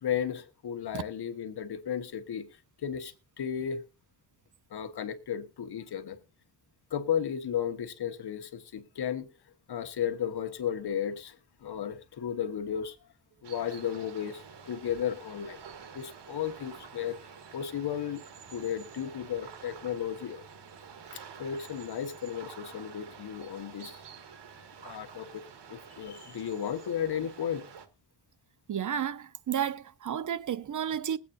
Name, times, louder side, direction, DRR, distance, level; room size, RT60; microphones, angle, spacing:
voice 1, 0.0-2.5 2.8-3.8 4.7-6.2 6.9-9.3 9.7-11.4 11.6-13.0 13.4-15.6 15.9-18.2 18.5-20.4 21.1-24.0 24.8-25.4 25.7-27.6, left 9 dB, 70° left, 1.3 m, -34 dB
sound 1, 13.4-27.9, right 6 dB, 80° right, 1.4 m, -49 dB
voice 2, 28.7-31.2, right 9 dB, 50° right, 0.6 m, -32 dB
21.0 x 8.5 x 2.7 m
wide cardioid pair, 105°, 40 cm